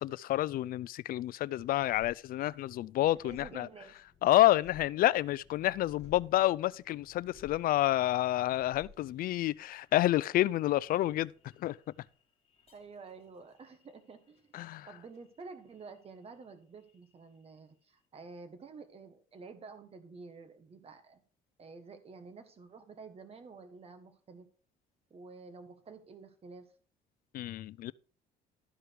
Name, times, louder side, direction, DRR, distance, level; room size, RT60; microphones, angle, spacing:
voice 1, 0.0-3.7 4.2-11.3 11.6-11.8 14.5-14.9 27.3-27.9, left 15 dB, 60° left, 0.4 m, -29 dB
sound 1, 1.6-16.5 16.8-17.6, left 5 dB, 35° left, 2.0 m, -60 dB
voice 2, 3.1-3.9 12.7-14.5 14.8-21.2 21.6-24.5 25.1-26.7, right 4 dB, 35° right, 1.4 m, -50 dB
12.5 x 5.0 x 4.7 m
cardioid pair, 110°, 17 cm